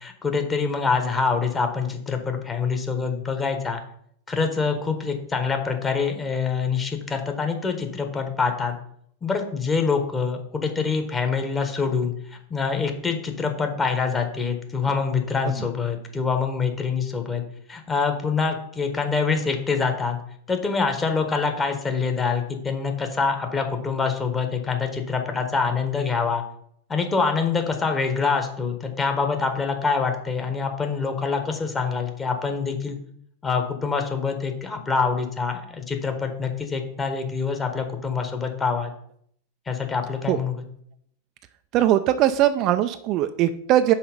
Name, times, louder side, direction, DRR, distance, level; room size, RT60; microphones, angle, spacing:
voice 1, 0.0-3.8 4.3-8.7 9.2-17.4 17.7-20.2 20.5-26.4 26.9-33.0 33.4-38.9 39.7-40.6, left 5 dB, 15° left, 5 dB, 1.2 m, -25 dB
voice 2, 41.7-43.9, right 12 dB, 40° right, 10 dB, 0.3 m, -20 dB
5.6 x 4.7 x 5.1 m, 0.68 s
figure-of-eight pair, 90°, 0 cm